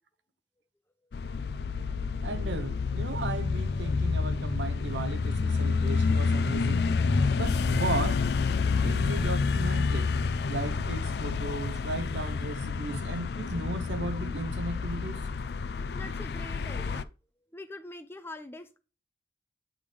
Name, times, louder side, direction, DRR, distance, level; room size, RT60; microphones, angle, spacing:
sound 1, 1.1-17.0, left 4 dB, 60° left, 0.4 m, -29 dB
voice 1, 2.2-6.9 7.3-8.2 8.8-10.1 10.4-15.3, right 2 dB, 80° right, 0.9 m, -35 dB
voice 2, 15.9-17.1 17.5-18.8, left 1 dB, 15° left, 0.6 m, -43 dB
8.6 x 3.5 x 4.9 m
head